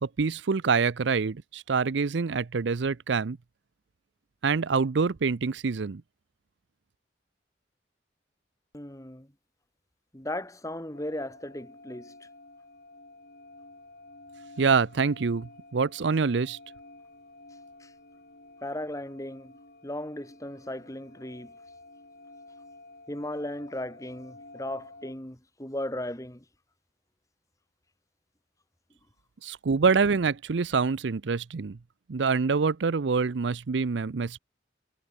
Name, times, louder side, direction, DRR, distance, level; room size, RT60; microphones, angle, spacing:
voice 1, 0.0-3.4 4.4-6.0 14.6-16.6 29.4-31.8 32.1-34.4, right 5 dB, 75° right, 0.6 m, -26 dB
voice 2, 8.7-9.3 10.1-12.1 17.8-17.9 18.6-21.5 23.1-26.4, left 1 dB, 15° left, 2.6 m, -36 dB
sound 1, 10.9-25.1, left 2 dB, 55° left, 5.6 m, -51 dB
head